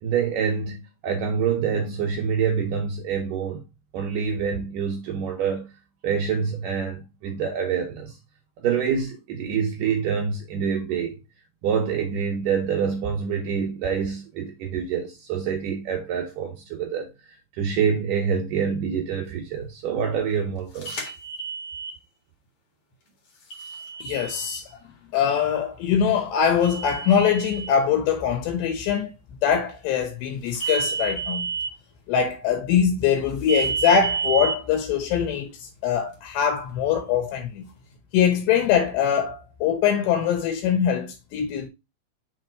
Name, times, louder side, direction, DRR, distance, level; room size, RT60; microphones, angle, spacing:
voice 1, 0.0-3.6 3.9-5.7 6.0-8.1 8.6-11.2 11.6-17.1 17.5-21.1, right 7 dB, 75° right, 1.9 m, -26 dB
sound 1, 20.8-21.9 23.5-24.6 26.6-27.7 30.5-31.7 33.5-34.5, right 5 dB, 55° left, 1.6 m, -29 dB
voice 2, 24.0-24.8 25.1-29.1 29.4-31.5 32.1-37.7 38.1-41.7, left 8 dB, 75° left, 3.1 m, -23 dB
6.7 x 3.5 x 4.4 m
omnidirectional pair, 5.1 m